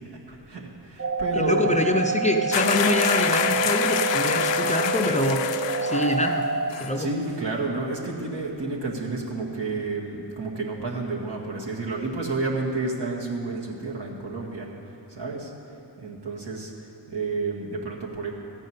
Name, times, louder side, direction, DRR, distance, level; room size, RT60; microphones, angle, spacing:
voice 1, 0.1-1.7 7.0-14.7 15.1-15.5 16.0-16.7 17.1-18.3, right 3 dB, 70° right, -2 dB, 1.9 m, -30 dB
sound 1, 1.0-6.7, right 3 dB, 30° right, 0.6 m, -27 dB
voice 2, 1.3-5.4 5.8-6.5 6.8-7.1, left 1 dB, 15° left, 3 dB, 0.5 m, -25 dB
sound 2, 2.5-6.4 6.7-6.9, left 10 dB, 85° left, 0.6 m, -27 dB
14.0 x 5.4 x 9.3 m, 2.7 s
wide cardioid pair, 125°, 42 cm